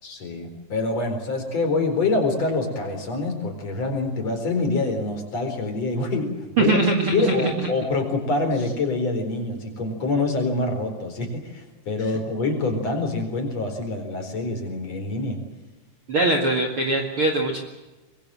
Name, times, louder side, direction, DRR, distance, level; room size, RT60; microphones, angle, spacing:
voice 1, 0.0-6.8 7.1-15.4, left 3 dB, 40° left, 6 dB, 5.2 m, -26 dB
voice 2, 6.6-7.7 16.1-17.6, right 3 dB, 40° right, 2 dB, 2.4 m, -22 dB
25.0 x 22.0 x 7.7 m, 1.1 s
omnidirectional pair, 4.5 m